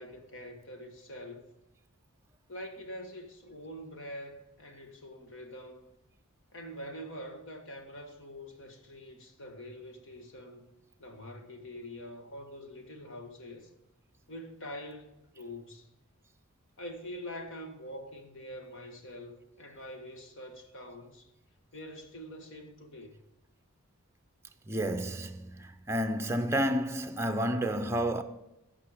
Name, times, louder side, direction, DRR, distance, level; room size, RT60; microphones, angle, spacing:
voice 1, 0.0-1.5 2.5-5.9 6.5-10.7 11.0-13.7 14.3-15.9 16.8-21.3 21.7-23.2, equal, 60° left, 1.5 m, -45 dB
voice 2, 24.7-28.2, equal, 10° right, 0.6 m, -30 dB
15.5 x 5.9 x 5.0 m
head